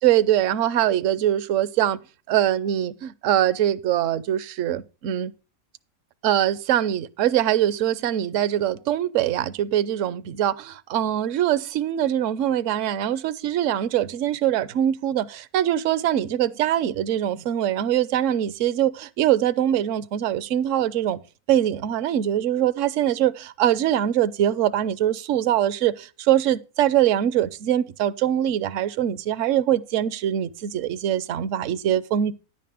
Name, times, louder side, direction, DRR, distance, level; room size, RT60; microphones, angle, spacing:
voice 1, 0.0-2.0 2.3-5.3 6.2-21.2 21.5-32.3, right 11 dB, 65° right, 0.9 m, -23 dB
10.5 x 9.3 x 3.4 m
omnidirectional pair, 1.5 m